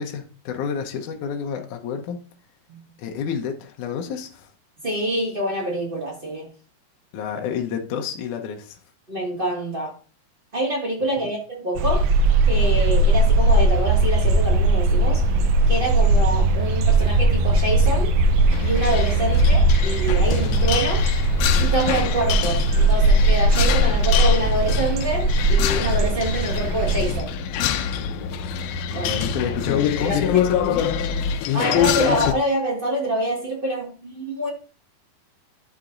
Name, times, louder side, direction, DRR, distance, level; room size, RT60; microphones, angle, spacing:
voice 1, 0.0-2.2 3.0-4.5 7.1-8.8 11.2-11.3 19.2-19.5 28.9-30.9, left 7 dB, 70° left, 2.1 m, -29 dB
voice 2, 4.8-6.5 9.1-10.0 10.5-12.1 12.5-15.2 15.7-18.1 18.6-21.1 21.6-27.3 28.9-29.2 29.7-30.2 31.5-34.5, right 1 dB, 30° right, 1.0 m, -26 dB
sound 1, 11.8-27.2, right 2 dB, 80° right, 1.7 m, -19 dB
sound 2, 14.2-31.3, left 2 dB, 55° left, 2.7 m, -30 dB
sound 3, 18.5-32.3, left 11 dB, 85° left, 2.5 m, -26 dB
11.5 x 7.0 x 2.6 m
omnidirectional pair, 4.3 m